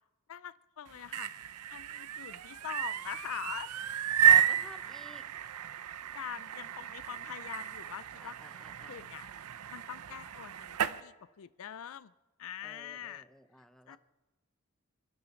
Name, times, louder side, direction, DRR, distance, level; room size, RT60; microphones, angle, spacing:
voice 1, 0.3-1.3 1.7-3.7 6.1-8.4 8.9-9.3 9.7-12.1 12.4-13.2 13.9-14.0, left 9 dB, 65° left, 16 dB, 0.4 m, -43 dB
sound 1, 0.9-11.0, right 9 dB, 80° right, 0.6 m, -31 dB
voice 2, 4.2-5.3 6.7-6.9 8.2-9.0 12.6-14.0, left 1 dB, ahead, 9 dB, 0.9 m, -51 dB
25.0 x 12.0 x 4.4 m, 1.1 s
head